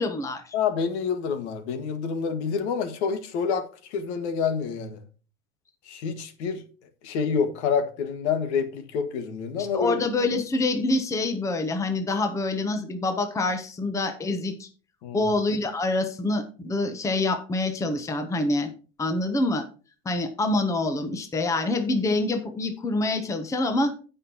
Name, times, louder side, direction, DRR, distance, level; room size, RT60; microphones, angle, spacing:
voice 1, 0.0-0.5 9.7-14.7 15.1-18.7 19.0-19.6 20.0-23.9, left 2 dB, 10° left, 0.8 m, -26 dB
voice 2, 0.5-5.0 5.9-6.6 7.0-9.9 15.0-15.3, left 6 dB, 75° left, 1.8 m, -27 dB
16.5 x 5.5 x 2.9 m
supercardioid pair, 150°, 34 cm